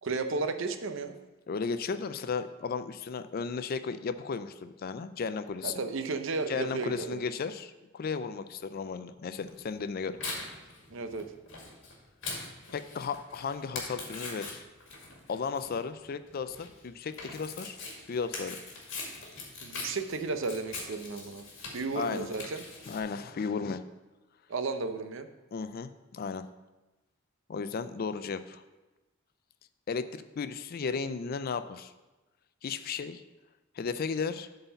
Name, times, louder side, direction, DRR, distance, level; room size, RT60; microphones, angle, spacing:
voice 1, 0.0-1.2 5.6-7.2 10.9-11.3 19.6-21.4 21.7-22.6 24.5-25.3, right 4 dB, 65° right, 8 dB, 0.6 m, -33 dB
voice 2, 1.5-5.7 6.5-10.2 12.7-14.6 15.3-17.8 18.1-18.6 21.9-22.3 22.9-23.8 25.5-26.4 27.5-28.6 29.9-31.9 32.6-33.2 33.8-34.5, left 5 dB, 45° left, 12 dB, 0.4 m, -34 dB
Tearing, 9.5-23.0, left 3 dB, 65° left, 2.2 m, -42 dB
7.7 x 4.1 x 6.9 m, 1.1 s
head